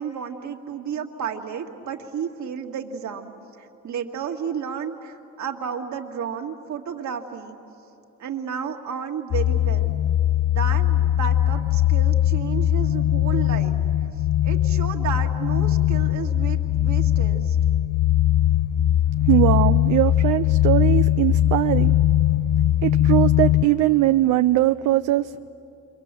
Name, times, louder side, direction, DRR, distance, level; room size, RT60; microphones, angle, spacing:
voice 1, 0.0-3.3 3.6-7.6 8.2-9.9 10.5-13.8 14.4-17.6, right 7 dB, 70° right, 3 dB, 2.0 m, -32 dB
sound 1, 9.3-23.6, left 12 dB, 55° left, 0.6 m, -20 dB
voice 2, 19.2-22.0 22.8-25.3, right 15 dB, 85° right, 9 dB, 0.5 m, -20 dB
28.5 x 24.0 x 7.5 m, 2.8 s
cardioid pair, 90°, 30 cm